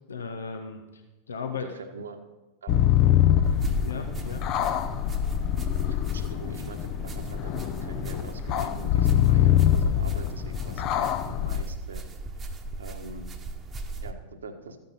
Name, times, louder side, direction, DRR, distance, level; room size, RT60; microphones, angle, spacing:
voice 1, 0.1-0.8 1.3-1.7 3.4-4.4, left 6 dB, 70° left, 5 dB, 1.1 m, -36 dB
voice 2, 1.5-2.2 2.6-2.8 5.9-12.0 12.8-13.2 14.0-14.8, right 3 dB, 70° right, 6 dB, 1.5 m, -43 dB
sound 1, 2.7-11.6, left 11 dB, 40° left, 0.8 m, -24 dB
sound 2, 3.4-14.1, right 2 dB, 20° right, 1.2 m, -38 dB
14.5 x 9.3 x 5.3 m, 1.1 s
figure-of-eight pair, 90°, 0 cm